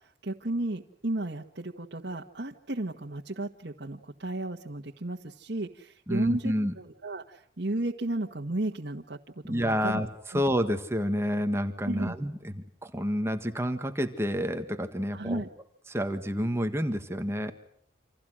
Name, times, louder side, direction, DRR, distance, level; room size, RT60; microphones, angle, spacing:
voice 1, 0.2-9.2 9.5-10.0 10.3-10.4 11.8-12.1 15.1-15.5, right 2 dB, 70° right, 0 dB, 1.5 m, -34 dB
voice 2, 6.1-6.7 9.4-10.1 10.3-15.4 15.9-17.5, equal, 15° right, 7 dB, 1.7 m, -29 dB
29.0 x 27.5 x 6.4 m, 0.67 s
head